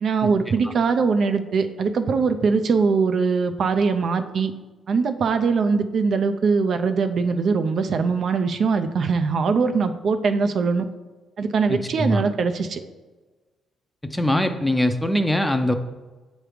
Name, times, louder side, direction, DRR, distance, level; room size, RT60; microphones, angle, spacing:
voice 1, 0.0-4.5 4.9-10.8 11.4-12.8, right 5 dB, 55° right, 8 dB, 0.5 m, -22 dB
voice 2, 11.7-12.3 14.1-15.7, left 1 dB, 5° left, 7 dB, 0.5 m, -22 dB
7.5 x 3.1 x 5.0 m, 1.2 s
cardioid pair, 90°, 0 cm